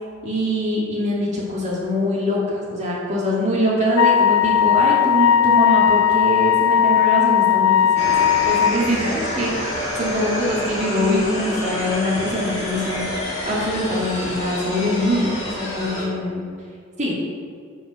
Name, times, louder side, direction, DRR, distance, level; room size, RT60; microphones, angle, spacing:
voice 1, 0.2-8.1 8.4-13.1 13.4-15.3 15.6-16.4 17.0-17.2, equal, 35° right, -5 dB, 2.1 m, -23 dB
Wind instrument woodwind instrument, 4.0-8.8, left 9 dB, 85° left, 0.4 m, -17 dB
sound 1, 8.0-16.0, left 1 dB, 30° left, 2.2 m, -28 dB
8.6 x 5.1 x 6.3 m, 2.2 s
head